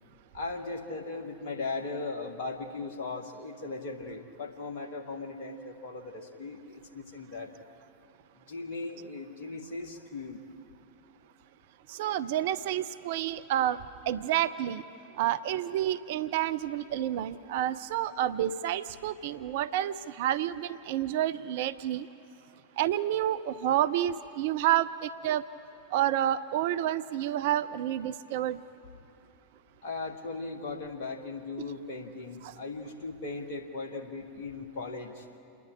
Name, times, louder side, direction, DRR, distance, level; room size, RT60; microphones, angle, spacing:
voice 1, 0.3-7.5 8.5-10.4 29.8-35.3, left 3 dB, 50° left, 2 dB, 2.0 m, -38 dB
voice 2, 11.9-13.8 14.1-14.8 15.2-22.1 22.8-25.4 25.9-28.6 32.4-32.5, right 12 dB, 50° right, 15 dB, 0.4 m, -29 dB
28.5 x 10.5 x 8.6 m, 2.7 s
figure-of-eight pair, 90°, 0 cm